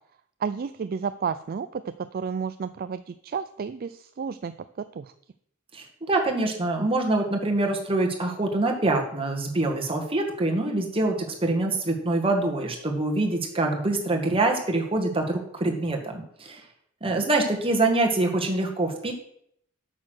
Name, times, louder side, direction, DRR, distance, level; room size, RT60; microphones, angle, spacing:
voice 1, 0.4-5.1, right 6 dB, 45° right, 12 dB, 0.3 m, -32 dB
voice 2, 5.7-16.6 17.0-19.1, right 2 dB, 25° right, 2 dB, 1.8 m, -25 dB
8.7 x 6.5 x 6.4 m, 0.70 s
head